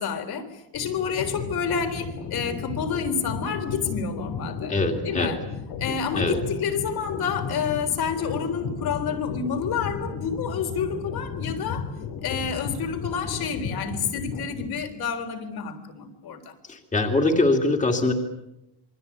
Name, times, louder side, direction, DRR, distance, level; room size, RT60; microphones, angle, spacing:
voice 1, 0.0-4.7 5.0-5.4 5.8-11.9 12.2-16.5, left 6 dB, 55° left, 6 dB, 3.9 m, -29 dB
sound 1, 0.7-15.0, left 5 dB, 85° left, 5.2 m, -34 dB
voice 2, 4.7-5.3 6.1-6.4 16.7-18.1, left 2 dB, 15° left, 4 dB, 2.5 m, -22 dB
28.0 x 23.5 x 8.5 m, 0.91 s
cardioid pair, 175°, 46 cm